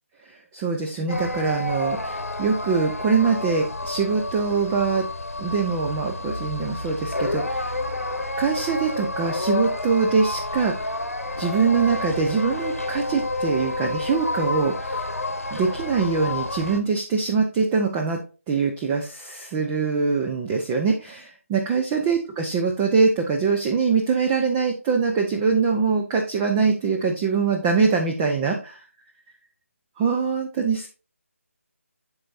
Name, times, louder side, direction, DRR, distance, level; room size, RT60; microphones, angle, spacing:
voice 1, 0.3-5.0 5.4-7.8 8.4-10.9 11.4-15.0 15.5-18.2 18.5-28.8 30.0-30.9, right 5 dB, 10° right, 2 dB, 0.4 m, -23 dB
sound 1, 1.1-16.8, left 2 dB, 80° left, 1.0 m, -30 dB
12.0 x 4.0 x 2.5 m, 0.33 s
figure-of-eight pair, 155°, 8 cm